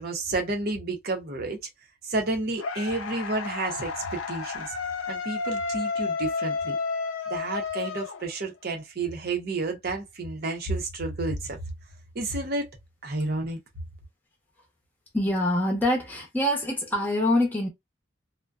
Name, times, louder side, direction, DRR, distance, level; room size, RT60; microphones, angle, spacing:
voice 1, 0.0-1.6 2.0-4.7 5.1-6.8 7.3-11.6 12.1-12.7 13.0-13.6, right 2 dB, 50° right, 0.7 m, -30 dB
sound 1, 2.6-8.7, left 4 dB, 80° left, 0.5 m, -31 dB
voice 2, 15.1-17.7, left 1 dB, 10° left, 0.7 m, -25 dB
2.5 x 2.1 x 2.3 m
head